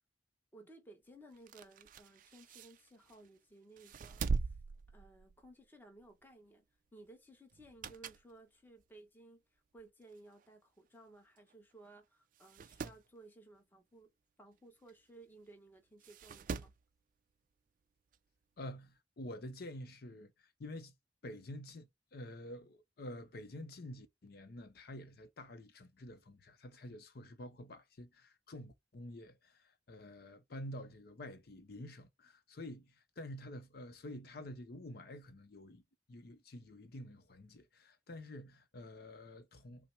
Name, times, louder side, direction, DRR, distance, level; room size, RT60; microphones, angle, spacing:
voice 1, 0.5-4.6 4.9-6.7 6.9-14.1 14.4-16.7, right 2 dB, 10° left, 0.9 m, -58 dB
sound 1, 1.3-3.3 3.8-5.6 6.0-6.2 7.5-8.3 8.8-8.9 9.8-9.9 10.1-10.2 10.4-10.5 11.4-11.5 11.9-12.0 12.3-13.0 14.9-15.0 16.0-16.8 18.1-18.2, right 4 dB, 50° right, 0.3 m, -41 dB
voice 2, 18.6-20.9 21.2-35.8 36.1-39.9, left 1 dB, 60° left, 0.6 m, -49 dB
5.7 x 2.0 x 4.5 m
head